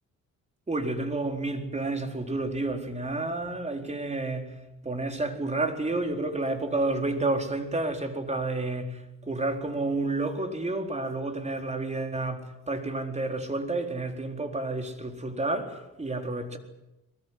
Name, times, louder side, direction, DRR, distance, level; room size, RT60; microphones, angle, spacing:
voice 1, 0.7-4.6 4.8-16.6, right 2 dB, 20° right, 4.4 m, -30 dB
23.0 x 21.0 x 9.9 m
cardioid pair, 90°, 30 cm